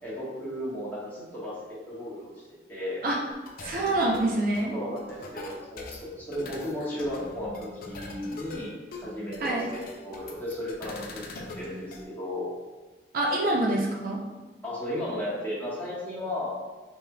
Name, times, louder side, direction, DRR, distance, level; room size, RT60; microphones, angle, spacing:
voice 1, 0.0-2.4 2.7-3.0 4.7-8.7 9.0-11.2 11.6-12.5 14.6-16.5, left 1 dB, 10° left, -9 dB, 1.3 m, -34 dB
sound 1, 3.5-12.0, left 2 dB, 55° left, 0.4 m, -43 dB
voice 2, 3.6-4.7 9.4-9.7 13.1-14.2, right 1 dB, 55° right, -2 dB, 0.6 m, -26 dB
5.1 x 3.0 x 2.3 m, 1.3 s
head